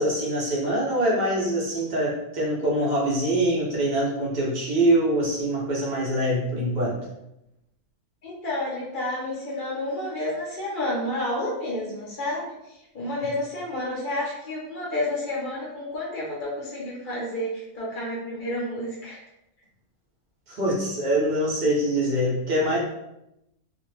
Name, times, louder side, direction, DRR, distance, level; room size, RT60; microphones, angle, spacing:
voice 1, 0.0-7.0 20.5-22.8, right 1 dB, 60° right, -4 dB, 0.4 m, -24 dB
voice 2, 8.2-19.2, left 1 dB, 50° left, -5 dB, 0.6 m, -30 dB
2.4 x 2.1 x 3.1 m, 0.86 s
omnidirectional pair, 1.6 m